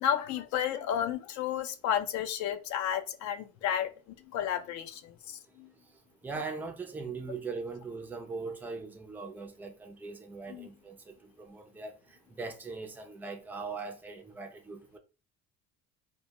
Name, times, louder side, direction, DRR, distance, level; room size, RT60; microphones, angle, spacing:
voice 1, 0.0-3.9 4.2-5.7 10.5-10.7, left 9 dB, 60° left, 0.5 m, -32 dB
voice 2, 6.2-12.0 12.4-15.0, right 4 dB, 5° right, 0.3 m, -40 dB
2.2 x 2.2 x 2.7 m
cardioid pair, 105°, 32 cm